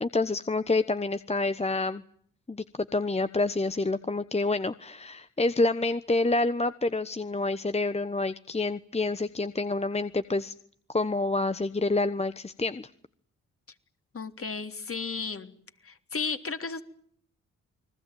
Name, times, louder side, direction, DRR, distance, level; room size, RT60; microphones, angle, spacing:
voice 1, 0.0-2.0 2.5-10.5 10.9-12.9, left 2 dB, 20° left, 12 dB, 1.1 m, -28 dB
voice 2, 14.1-15.5 15.8-16.8, left 5 dB, 45° left, 7 dB, 3.4 m, -34 dB
29.5 x 20.5 x 9.2 m, 0.62 s
supercardioid pair, 55°, 31 cm